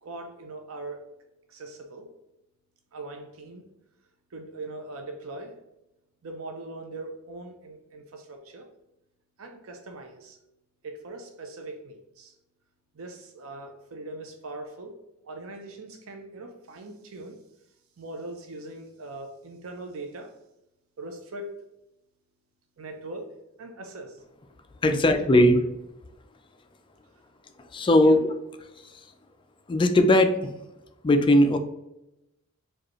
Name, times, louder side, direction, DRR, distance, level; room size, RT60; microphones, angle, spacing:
voice 1, 0.0-1.0 1.5-2.1 2.9-3.6 4.3-5.6 6.2-8.7 9.4-10.4 10.8-12.3 12.9-15.0 15.2-17.4 18.0-20.3 21.0-21.5 22.8-23.3 23.6-24.2 24.8-25.4 28.0-28.1, right 2 dB, 90° right, 4 dB, 0.6 m, -40 dB
voice 2, 24.8-25.6 27.7-28.3 28.8-29.0 29.7-30.5 31.0-31.6, left 1 dB, 25° left, 7 dB, 0.4 m, -19 dB
4.9 x 2.4 x 3.0 m, 0.90 s
head